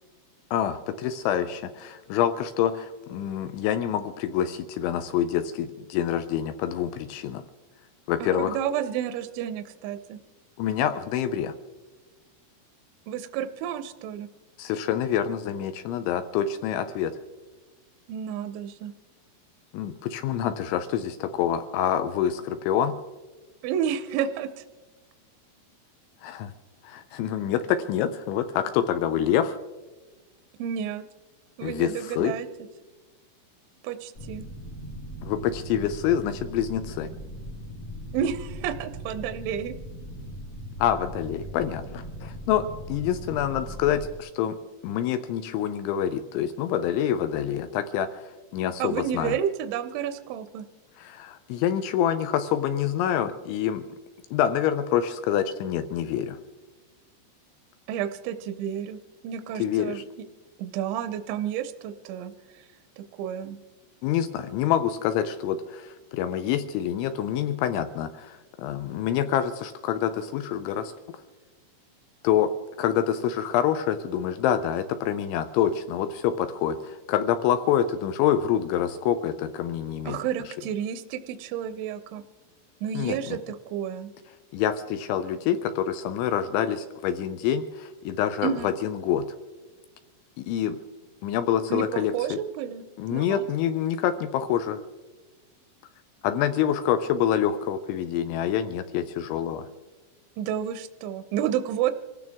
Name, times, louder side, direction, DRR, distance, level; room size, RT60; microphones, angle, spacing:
voice 1, 0.5-7.4 8.1-8.6 10.6-11.5 14.6-17.1 19.7-22.9 26.2-26.5 26.8-29.6 31.6-32.3 35.2-37.1 40.8-44.5 44.8-48.2 48.5-49.3 51.0-53.8 54.3-56.4 59.6-60.0 64.0-70.9 72.2-72.5 72.8-80.2 82.9-83.4 84.5-89.2 90.4-90.8 91.2-92.4 93.0-94.8 96.2-99.6, left 9 dB, 80° left, 10 dB, 2.8 m, -26 dB
voice 2, 8.2-10.2 13.1-14.3 18.1-18.9 23.6-24.6 30.6-31.0 31.6-32.5 33.8-34.5 38.1-39.8 48.8-50.7 57.9-60.0 60.6-62.3 63.0-63.6 80.1-82.2 82.8-84.1 88.4-88.7 91.7-92.8 93.1-93.5 100.4-101.9, right 9 dB, 80° right, 10 dB, 2.7 m, -30 dB
sound 1, 34.1-44.2, equal, 30° left, 1.4 m, -39 dB
25.5 x 15.5 x 3.5 m, 1.2 s
omnidirectional pair, 5.9 m